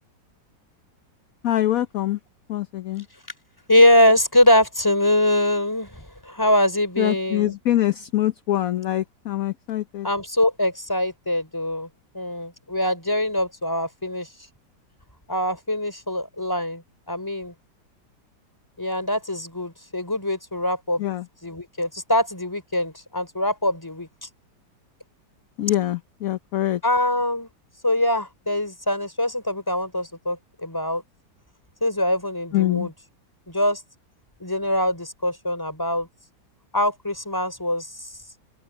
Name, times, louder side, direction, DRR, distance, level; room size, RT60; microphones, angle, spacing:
voice 1, 1.4-2.2 2.5-3.0 7.0-10.1 21.0-21.2 25.6-26.8 32.5-32.9, left 13 dB, 60° left, 1.1 m, -24 dB
voice 2, 3.7-7.5 10.0-11.9 12.1-14.3 15.3-17.5 18.8-21.0 21.4-24.1 26.8-27.5 27.8-31.0 31.8-32.9 33.5-33.8 34.4-36.1 36.7-38.1, left 1 dB, 10° left, 4.2 m, -23 dB
open air
omnidirectional pair, 2.0 m